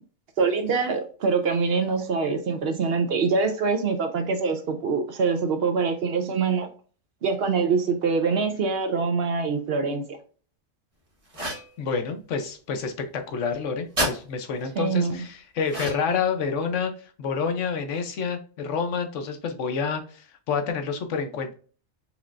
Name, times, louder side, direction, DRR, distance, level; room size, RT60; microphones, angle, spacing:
voice 1, 0.4-6.7 7.2-10.1 14.8-15.2, right 5 dB, 60° right, 7 dB, 0.8 m, -24 dB
sound 1, 11.3-11.7 14.0-14.2 15.7-16.2, right 1 dB, 30° right, 1.3 m, -28 dB
voice 2, 11.8-16.9 17.2-21.5, left 5 dB, 85° left, 7 dB, 1.1 m, -28 dB
4.9 x 3.1 x 2.4 m, 0.40 s
omnidirectional pair, 1.2 m